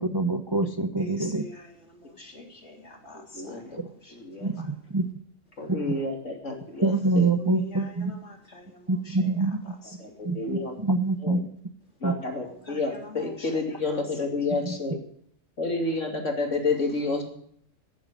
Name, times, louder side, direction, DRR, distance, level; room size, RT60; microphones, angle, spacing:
voice 1, 0.0-1.4 3.8-3.9 4.4-5.0 6.8-8.2 8.9-9.6 10.2-11.5 12.0-12.1, right 3 dB, 20° right, 8 dB, 0.8 m, -25 dB
voice 2, 1.0-4.7 7.3-10.2 12.4-14.0, left 2 dB, 60° left, 2 dB, 3.6 m, -46 dB
voice 3, 3.1-3.8 4.1-4.5 5.6-7.3 10.0-10.8 11.2-11.4 12.0-15.0 15.6-17.2, left 3 dB, 75° left, 2 dB, 3.2 m, -30 dB
15.0 x 10.5 x 6.4 m, 0.65 s
omnidirectional pair, 1.3 m